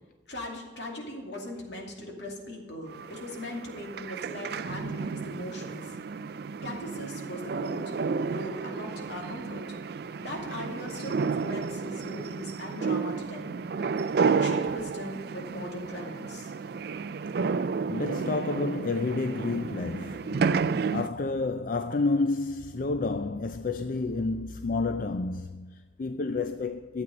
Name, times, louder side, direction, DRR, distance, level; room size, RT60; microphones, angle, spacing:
voice 1, 0.3-6.0 6.6-8.0 8.3-9.6 10.2-13.5 14.2-16.5, left 1 dB, 75° left, 2.5 m, -39 dB
sound 1, 2.9-21.1, right 5 dB, 60° right, 0.4 m, -31 dB
voice 2, 17.9-20.4 20.9-27.0, left 3 dB, 50° left, 0.4 m, -30 dB
12.5 x 8.3 x 5.2 m
head